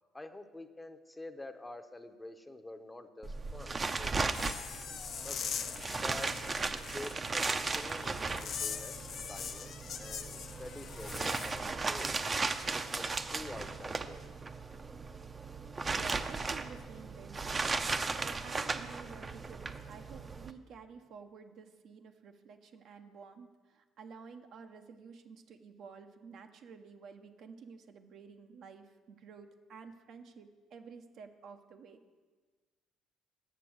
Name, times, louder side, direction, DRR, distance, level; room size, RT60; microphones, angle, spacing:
voice 1, 0.1-4.5 5.2-5.4 5.9-6.3 6.7-12.2 12.7-14.2, left 2 dB, 15° left, 7 dB, 0.8 m, -47 dB
sound 1, 3.2-20.5, right 3 dB, 30° right, 0.6 m, -36 dB
sound 2, 4.3-11.6, left 7 dB, 55° left, 0.6 m, -42 dB
voice 2, 15.9-32.0, right 5 dB, 60° right, 5 dB, 0.8 m, -51 dB
8.9 x 6.8 x 6.4 m, 1.4 s
hypercardioid pair, 60°, 0 cm